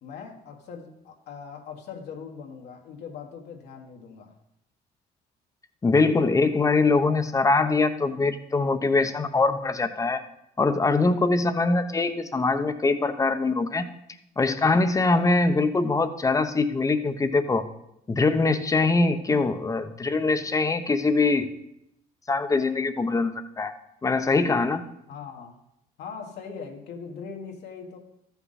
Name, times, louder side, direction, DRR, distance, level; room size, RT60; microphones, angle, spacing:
voice 1, 0.0-4.4 25.1-25.6 26.0-28.0, left 6 dB, 80° left, 1 dB, 1.5 m, -40 dB
voice 2, 5.8-10.2 10.6-13.9 14.4-17.6 18.1-21.5 22.3-23.3 23.6-23.7 24.0-24.8, left 3 dB, 20° left, 9 dB, 0.7 m, -23 dB
13.5 x 5.8 x 4.1 m, 0.79 s
cardioid pair, 110°, 17 cm